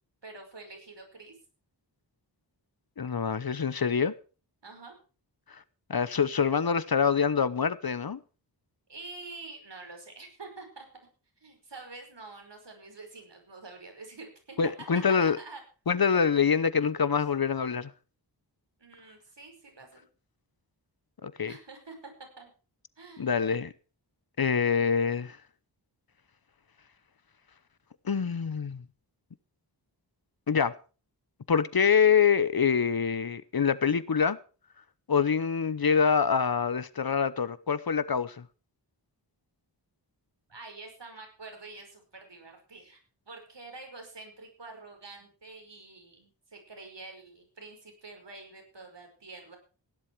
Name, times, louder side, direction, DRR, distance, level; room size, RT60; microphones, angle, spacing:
voice 1, 0.2-1.4 4.6-4.9 8.9-10.9 11.4-14.6 14.9-15.6 16.3-16.5 18.8-20.1 21.5-22.5 23.0-23.4 40.5-49.6, right 3 dB, 70° right, 5.2 m, -47 dB
voice 2, 3.0-4.1 5.5-5.6 5.9-8.2 14.6-15.4 15.9-17.9 21.2-21.5 23.2-23.7 24.4-25.4 28.0-28.8 30.5-30.7 31.5-34.4 35.1-38.5, left 6 dB, 55° left, 0.9 m, -25 dB
16.5 x 11.0 x 4.7 m
wide cardioid pair, 65°, 44 cm